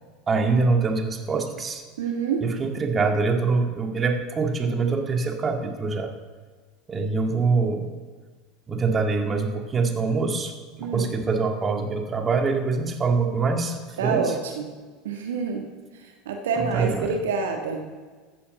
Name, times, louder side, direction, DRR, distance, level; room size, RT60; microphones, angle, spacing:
voice 1, 0.3-1.8 2.4-6.1 6.9-7.9 8.7-14.4 16.6-17.2, right 4 dB, 25° right, 3 dB, 2.2 m, -24 dB
voice 2, 2.0-2.4 10.8-11.1 14.0-14.6 15.0-15.7 16.2-17.8, right 5 dB, 75° right, 3 dB, 1.5 m, -27 dB
14.5 x 8.5 x 6.8 m, 1.4 s
hypercardioid pair, 75°, 0 cm